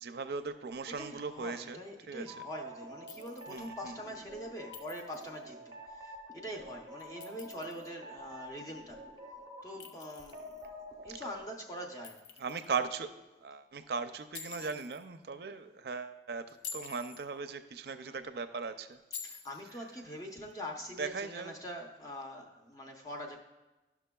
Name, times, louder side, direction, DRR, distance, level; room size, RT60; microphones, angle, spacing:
voice 1, 0.0-1.8 2.1-2.3 3.5-3.9 12.4-13.1 13.4-16.4 16.7-19.0 21.0-21.5, right 5 dB, 65° right, 10 dB, 0.4 m, -38 dB
voice 2, 1.0-9.0 9.6-10.7 11.0-12.2 18.1-18.2 19.2-23.4, equal, 20° left, 0 dB, 0.7 m, -44 dB
sound 1, 2.3-11.5, equal, 30° right, 0.8 m, -48 dB
Chink clink, 3.1-3.7 4.7-5.4 7.0-7.9 9.8-10.7 12.0-12.8 14.3-15.0 16.5-17.3 19.1-19.8, left 6 dB, 85° left, 0.6 m, -47 dB
12.0 x 5.9 x 2.3 m, 1.1 s
head